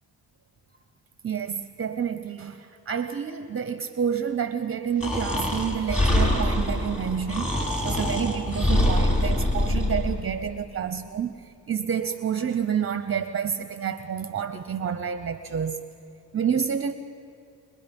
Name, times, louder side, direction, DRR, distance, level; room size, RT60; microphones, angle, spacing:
voice 1, 1.2-7.5 7.8-15.8 16.3-16.9, right 7 dB, 30° right, 0.7 m, -29 dB
Breathing, 5.0-10.1, left 1 dB, 15° left, 4.2 m, -24 dB
24.0 x 20.5 x 5.3 m
cardioid pair, 90°, 44 cm